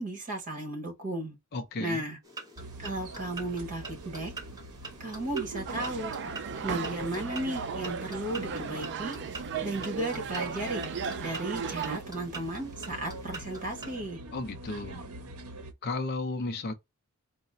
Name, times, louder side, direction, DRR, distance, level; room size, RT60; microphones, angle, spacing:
voice 1, 0.0-1.4 1.8-2.2 2.8-4.3 5.0-6.1 6.6-9.2 9.6-10.9 11.2-14.2, right 1 dB, 35° right, 1.4 m, -35 dB
voice 2, 1.5-2.0 14.3-15.1 15.8-16.7, left 2 dB, 45° left, 0.5 m, -34 dB
sound 1, 2.2-14.0, right 3 dB, 15° right, 1.1 m, -46 dB
sound 2, 2.6-15.7, right 2 dB, 80° right, 0.7 m, -43 dB
sound 3, 5.7-12.0, right 6 dB, 50° right, 0.4 m, -36 dB
4.0 x 2.1 x 3.8 m
head